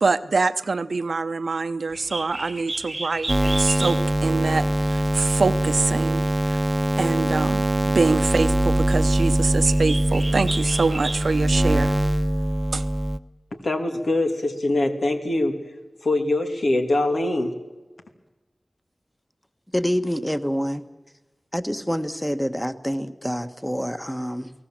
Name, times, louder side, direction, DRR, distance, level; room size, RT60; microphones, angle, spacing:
voice 1, 0.0-6.6 7.0-11.9 12.7-12.9, right 4 dB, 90° right, 12 dB, 0.8 m, -25 dB
Bird, 1.9-11.5, right 2 dB, 45° right, 1.1 m, -35 dB
sound 1, 3.3-13.2, right 1 dB, 25° right, 0.8 m, -22 dB
voice 2, 13.5-17.6, left 2 dB, 85° left, 4 dB, 2.5 m, -23 dB
voice 3, 19.7-20.8 21.5-24.5, equal, 5° left, 10 dB, 1.3 m, -26 dB
29.5 x 18.5 x 7.6 m, 1.2 s
wide cardioid pair, 50°, 0 cm